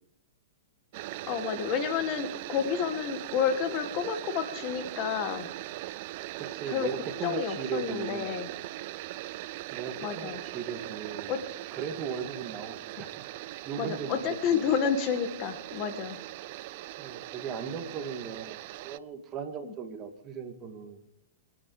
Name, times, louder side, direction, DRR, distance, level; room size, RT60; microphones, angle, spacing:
sound 1, 0.9-19.0, right 17 dB, 50° right, 0.5 m, -40 dB
voice 1, 1.2-5.5 6.7-6.9 7.2-8.5 10.0-10.4 11.3-11.4 13.8-16.2 19.6-19.7, left 7 dB, 40° left, 9 dB, 1.7 m, -30 dB
voice 2, 6.4-8.4 9.7-11.3 11.7-13.3 13.7-14.7 16.9-21.0, right 6 dB, 30° right, 7 dB, 2.1 m, -38 dB
25.0 x 9.0 x 4.9 m, 0.79 s
hypercardioid pair, 120°, 0 cm